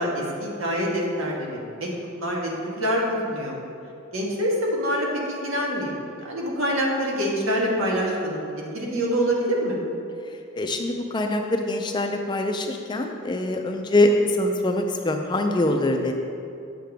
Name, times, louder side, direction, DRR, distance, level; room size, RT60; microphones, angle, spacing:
voice 1, 0.0-1.9 2.2-2.5 2.8-3.6 4.1-8.5 8.7-9.8, equal, 80° right, -3 dB, 1.6 m, -25 dB
voice 2, 10.5-16.1, left 1 dB, 20° left, 4 dB, 0.4 m, -23 dB
7.6 x 7.5 x 3.5 m, 2.5 s
head